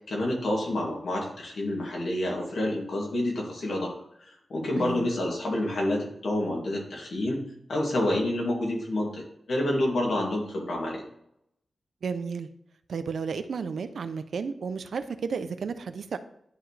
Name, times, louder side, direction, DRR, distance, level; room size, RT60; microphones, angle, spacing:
voice 1, 0.1-3.9 4.3-7.4 7.7-11.0, left 1 dB, 80° left, -2 dB, 2.5 m, -28 dB
voice 2, 4.8-5.1 12.0-12.5 12.9-16.2, right 5 dB, 80° right, 11 dB, 0.5 m, -32 dB
11.0 x 4.7 x 3.3 m, 0.73 s
wide cardioid pair, 130°, 0 cm